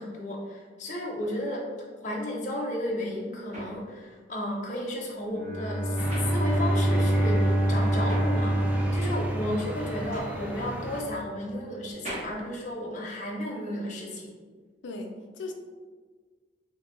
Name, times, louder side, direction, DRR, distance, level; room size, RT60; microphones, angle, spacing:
voice 1, 0.0-1.6 2.0-8.6 8.9-14.3, left 1 dB, 40° left, -3 dB, 0.6 m, -33 dB
sound 1, 2.8-7.1 7.3-13.6, equal, 40° right, 0.9 m, -43 dB
Bowed string instrument, 5.3-10.3, right 1 dB, 60° right, 1.2 m, -26 dB
sound 2, 6.0-11.0, right 1 dB, 10° right, 0.3 m, -36 dB
voice 2, 14.8-15.5, left 2 dB, 85° left, 4 dB, 0.4 m, -37 dB
2.7 x 2.6 x 3.8 m, 1.5 s
head